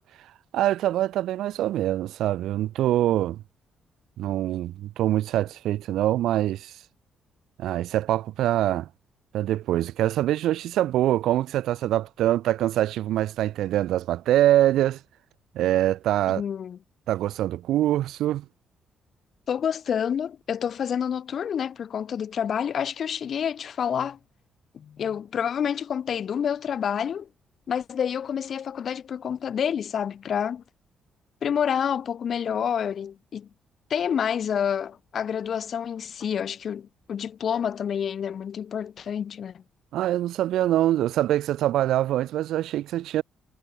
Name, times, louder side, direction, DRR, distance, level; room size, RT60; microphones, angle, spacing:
voice 1, 0.5-3.4 4.2-6.7 7.6-8.9 9.3-15.0 15.5-16.4 17.1-18.4 39.9-43.2, right 13 dB, 80° right, 0.8 m, -24 dB
voice 2, 16.3-16.8 19.5-24.2 24.7-27.3 27.7-30.6 31.4-33.5 33.9-39.6, left 8 dB, 55° left, 4.7 m, -28 dB
cardioid pair, 90°, 0 cm